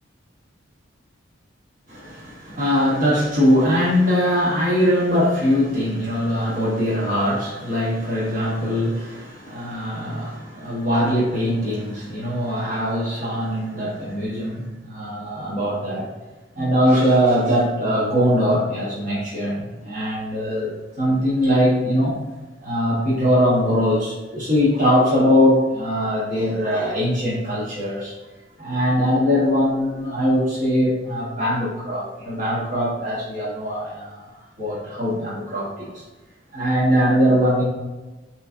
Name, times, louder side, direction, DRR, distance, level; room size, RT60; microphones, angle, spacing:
voice 1, 1.9-16.1 16.5-22.1 22.6-28.1 28.6-34.3 34.6-36.0 36.5-37.6, equal, 40° right, -8 dB, 1.4 m, -21 dB
6.3 x 3.1 x 2.7 m, 1.2 s
head